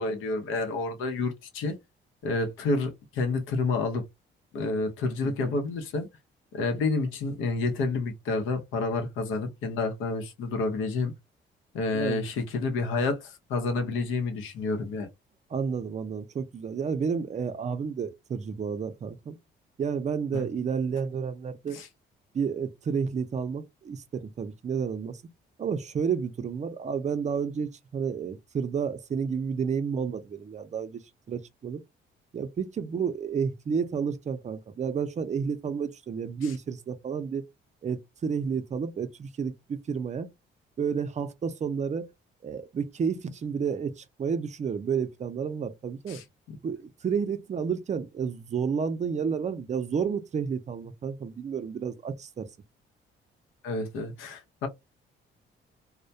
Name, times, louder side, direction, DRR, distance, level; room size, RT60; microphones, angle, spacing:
voice 1, 0.0-1.8 2.2-4.0 4.5-6.1 6.5-11.1 11.7-15.1 20.3-20.5 21.7-21.9 46.1-46.2 53.6-54.7, left 3 dB, 90° left, 0.7 m, -29 dB
voice 2, 5.2-5.6 11.9-12.2 15.5-19.4 19.8-21.8 22.3-25.2 25.6-31.0 31.3-31.8 32.3-37.4 37.8-40.3 40.8-42.1 42.4-46.2 46.6-52.5, right 6 dB, 35° right, 0.5 m, -31 dB
2.2 x 2.1 x 2.6 m
cardioid pair, 90°, 20 cm